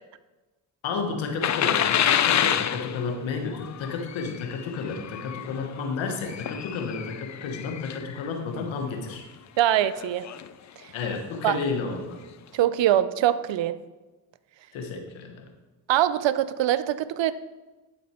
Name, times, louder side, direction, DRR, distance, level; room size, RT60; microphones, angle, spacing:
voice 1, 0.8-9.2 10.9-12.2 14.7-15.4, left 4 dB, 90° left, 4 dB, 1.2 m, -31 dB
sound 1, 1.4-8.3 8.9-9.1 9.7-10.5 11.3-11.4 11.9-12.0, left 9 dB, 40° left, 0.4 m, -28 dB
voice 2, 9.6-10.3 10.8-10.9 11.4-11.6 12.5-13.7 15.9-17.3, right 12 dB, 70° right, 14 dB, 0.6 m, -23 dB
11.5 x 4.3 x 4.3 m, 1.2 s
supercardioid pair, 50°, 46 cm